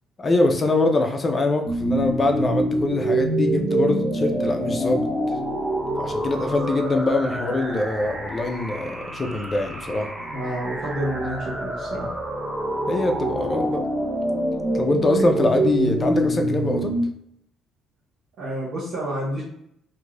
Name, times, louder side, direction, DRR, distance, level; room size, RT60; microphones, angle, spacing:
voice 1, 0.2-5.1 6.0-10.1 12.9-13.8 14.7-16.9, left 2 dB, 25° left, 5 dB, 0.4 m, -23 dB
sound 1, 1.7-17.0, right 1 dB, 20° right, 0.7 m, -26 dB
voice 2, 10.2-12.1 18.4-19.4, right 1 dB, 65° right, -8 dB, 1.0 m, -29 dB
2.6 x 2.4 x 3.2 m, 0.72 s
cardioid pair, 140°, 0 cm